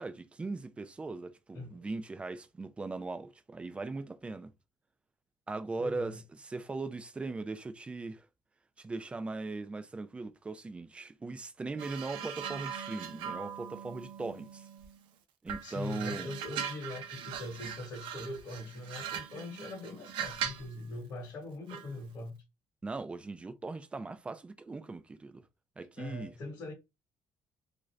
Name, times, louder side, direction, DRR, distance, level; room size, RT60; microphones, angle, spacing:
voice 1, 0.0-4.5 5.5-8.3 8.8-14.7 15.4-16.3 22.8-25.5 25.8-26.3, right 3 dB, 15° right, 0.3 m, -39 dB
voice 2, 5.8-6.2 15.6-22.4 26.0-26.7, left 2 dB, 40° left, 1.1 m, -42 dB
sound 1, 11.8-15.0 15.5-20.7 21.7-21.9, right 8 dB, 90° right, 0.7 m, -40 dB
3.6 x 2.5 x 3.1 m
cardioid pair, 165°, 8 cm